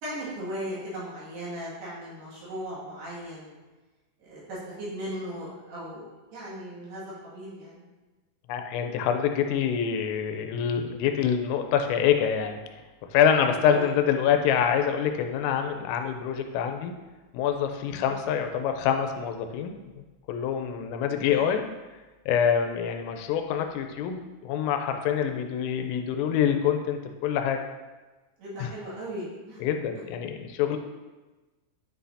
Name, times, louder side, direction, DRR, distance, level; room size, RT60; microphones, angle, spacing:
voice 1, 0.0-3.6 4.2-7.8 13.7-13.9 17.9-18.1 21.2-21.5 28.4-29.6, equal, 60° right, -8 dB, 3.7 m, -37 dB
voice 2, 8.5-12.6 13.1-16.9 17.3-19.7 20.3-21.6 22.3-27.6 28.6-28.7 29.6-30.8, left 8 dB, 85° left, 5 dB, 3.2 m, -26 dB
9.6 x 6.2 x 2.7 m, 1.2 s
omnidirectional pair, 5.8 m